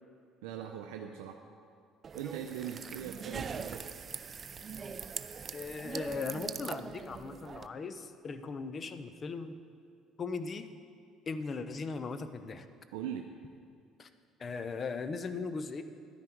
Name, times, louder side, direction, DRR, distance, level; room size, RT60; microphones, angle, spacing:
voice 1, 0.4-1.4 2.1-3.9 12.9-13.2, right 9 dB, 85° right, 3 dB, 0.5 m, -40 dB
sound 1, 2.0-7.7, right 6 dB, 40° right, 0.4 m, -42 dB
voice 2, 5.5-9.6 10.2-10.7 11.3-12.7 14.0-14.1 14.4-15.8, left 4 dB, 40° left, 10 dB, 0.7 m, -38 dB
11.5 x 9.8 x 4.6 m, 2.4 s
supercardioid pair, 85°, 0 cm